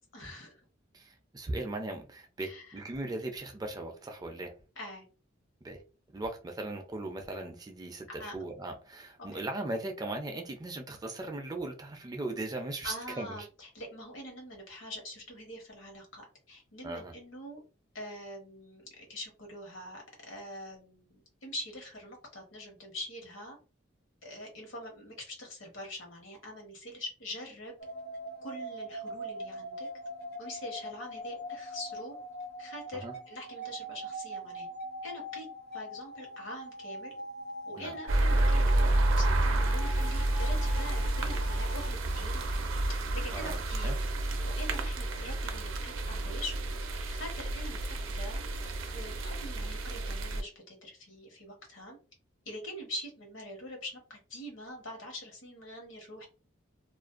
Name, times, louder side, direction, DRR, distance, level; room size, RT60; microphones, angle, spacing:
voice 1, 0.1-0.5 2.4-2.8 4.8-5.0 8.1-8.3 9.3-9.4 12.8-17.6 17.9-23.6 24.2-27.7 28.4-29.9 30.4-32.1 32.6-34.7 35.0-35.5 35.7-37.2 37.7-43.9 44.4-46.6 46.8-47.8 48.1-48.4 48.7-52.0 52.4-56.3, left 1 dB, 75° left, 1.0 m, -44 dB
voice 2, 0.9-4.5 5.6-5.8 6.1-13.5 16.8-17.1 32.9-33.1 37.8-37.9 43.3-44.0, right 2 dB, 20° right, 0.3 m, -38 dB
sound 1, 27.8-41.9, equal, 50° left, 0.6 m, -42 dB
sound 2, 38.1-50.4, right 1 dB, 80° right, 0.5 m, -30 dB
2.4 x 2.2 x 2.4 m
head